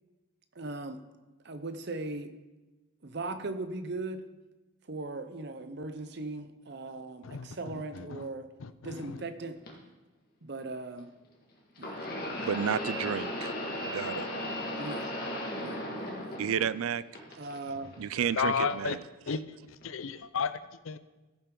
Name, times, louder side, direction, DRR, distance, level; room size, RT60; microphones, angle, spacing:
voice 1, 0.5-1.0 1.4-2.3 3.0-4.2 4.9-8.5 8.8-9.6 10.4-11.1 11.8-12.0 12.8-13.0 14.8-15.1 15.6-16.6 17.4-17.9, right 2 dB, 50° right, 10 dB, 0.7 m, -39 dB
voice 2, 7.2-8.3 8.6-9.2 18.3-19.0 19.3-21.0, left 6 dB, 75° left, 13 dB, 0.5 m, -34 dB
sound 1, 9.7-9.8 11.8-16.8 17.1-17.9 18.7-18.8 19.8-19.9, left 1 dB, 45° left, 1.9 m, -36 dB
voice 3, 12.4-14.3 16.4-17.0 18.0-19.0, right 8 dB, 85° right, 17 dB, 0.4 m, -31 dB
14.5 x 8.9 x 3.8 m, 1.1 s
head